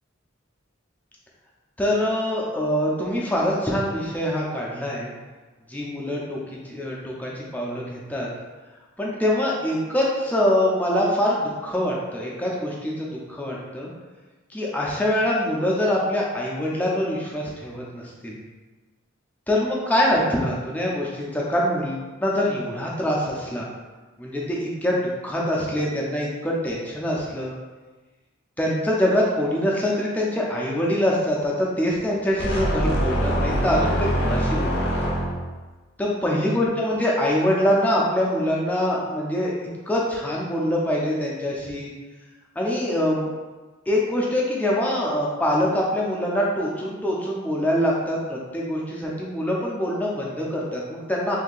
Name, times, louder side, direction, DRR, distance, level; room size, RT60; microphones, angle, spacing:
voice 1, 1.8-5.1 5.7-6.4 6.6-8.3 9.0-13.9 14.5-18.4 19.5-23.7 24.2-27.5 28.6-34.9 36.0-41.9 42.6-43.3 43.9-51.4, left 1 dB, 10° left, -4 dB, 0.5 m, -24 dB
sound 1, 32.4-35.6, equal, 55° left, 0.6 m, -24 dB
2.7 x 2.7 x 3.9 m, 1.3 s
head